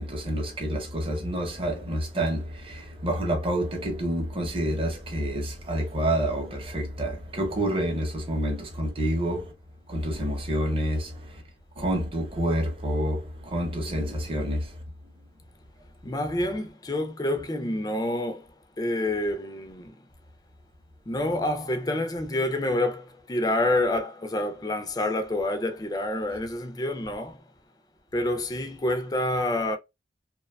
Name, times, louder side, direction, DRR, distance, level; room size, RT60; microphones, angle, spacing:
voice 1, 0.0-9.5 9.9-11.4 11.8-14.8, right 1 dB, 30° right, 0.7 m, -28 dB
voice 2, 16.0-18.5 18.8-20.0 21.1-27.4 28.1-29.8, left 1 dB, 20° left, 0.4 m, -28 dB
2.9 x 2.2 x 2.2 m
head